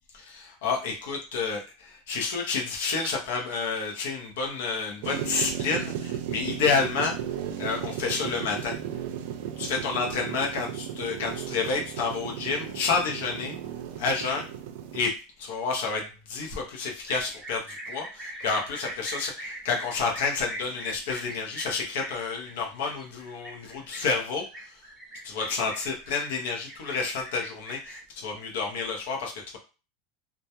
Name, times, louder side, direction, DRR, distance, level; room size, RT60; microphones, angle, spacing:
voice 1, 0.1-7.2 7.6-8.8 9.6-13.5 14.0-14.5 14.9-24.7 25.2-29.6, left 4 dB, 70° left, 1 dB, 0.6 m, -30 dB
sound 1, 5.0-15.0, right 9 dB, 60° right, 0.3 m, -35 dB
sound 2, 17.1-28.0, right 1 dB, 5° right, 0.6 m, -42 dB
2.2 x 2.2 x 2.8 m, 0.33 s
supercardioid pair, 165°, 0 cm